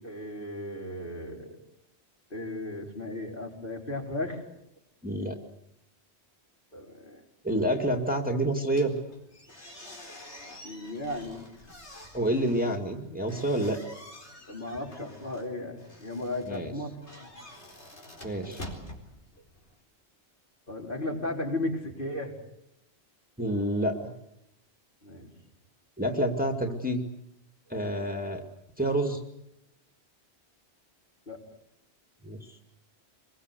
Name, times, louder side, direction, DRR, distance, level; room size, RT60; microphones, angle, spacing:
voice 1, 0.0-1.6 2.3-4.4 6.7-7.2 10.6-11.4 14.5-17.3 20.7-22.3 25.0-25.3 31.3-31.4, left 1 dB, 50° left, -1 dB, 4.8 m, -35 dB
voice 2, 5.0-5.4 7.4-9.0 12.1-13.8 16.5-16.7 18.2-18.6 23.4-24.1 26.0-27.0 27.7-28.4 28.8-29.2 32.2-32.5, right 1 dB, 10° right, 1 dB, 2.3 m, -28 dB
sound 1, 8.7-19.8, left 1 dB, 85° left, 4.6 m, -48 dB
25.0 x 22.5 x 8.3 m, 0.80 s
omnidirectional pair, 1.1 m